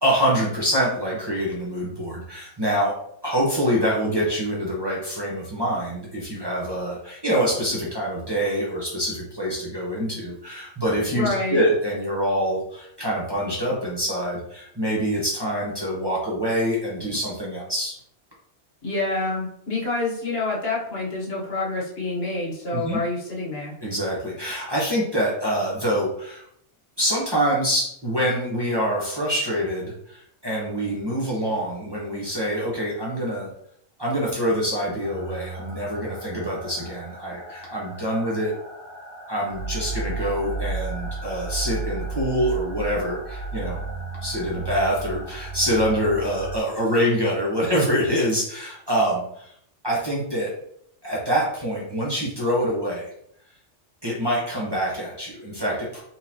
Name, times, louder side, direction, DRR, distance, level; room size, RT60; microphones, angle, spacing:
voice 1, 0.0-2.9 3.2-18.0 22.7-23.0 23.8-26.4 27.0-33.5 34.0-38.5 39.3-43.8 44.2-49.5 49.8-50.5 51.0-53.1 54.0-56.0, equal, 20° right, -5 dB, 1.1 m, -25 dB
voice 2, 11.1-11.6 18.8-23.7, left 2 dB, 55° left, -4 dB, 1.5 m, -27 dB
sound 1, 35.0-46.6, right 3 dB, 65° right, 1.5 m, -34 dB
4.4 x 3.8 x 2.9 m, 0.69 s
omnidirectional pair, 1.2 m